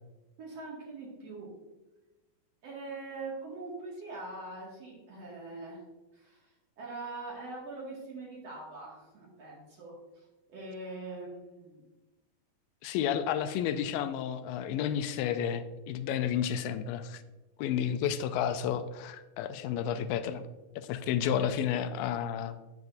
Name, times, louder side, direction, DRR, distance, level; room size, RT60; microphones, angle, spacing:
voice 1, 0.4-1.5 2.6-5.8 6.1-6.5 6.8-11.9, right 3 dB, 50° right, -4 dB, 2.8 m, -43 dB
voice 2, 12.8-17.2 17.6-20.4 20.8-22.6, left 9 dB, 85° left, 10 dB, 2.3 m, -31 dB
9.6 x 9.0 x 2.6 m, 1.1 s
omnidirectional pair, 4.0 m